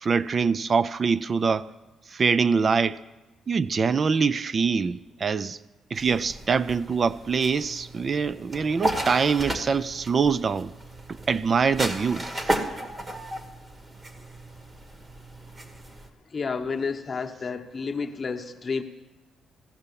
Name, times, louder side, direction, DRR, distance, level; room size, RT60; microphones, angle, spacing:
voice 1, 0.0-1.7 2.1-3.0 3.5-5.6 5.9-10.7 11.1-12.6, right 5 dB, 40° right, 0.3 m, -24 dB
sound 1, 6.0-16.1, right 1 dB, 25° right, 1.2 m, -34 dB
voice 2, 16.3-18.8, left 5 dB, 35° left, 0.9 m, -30 dB
15.0 x 5.6 x 6.9 m
cardioid pair, 90°, 0 cm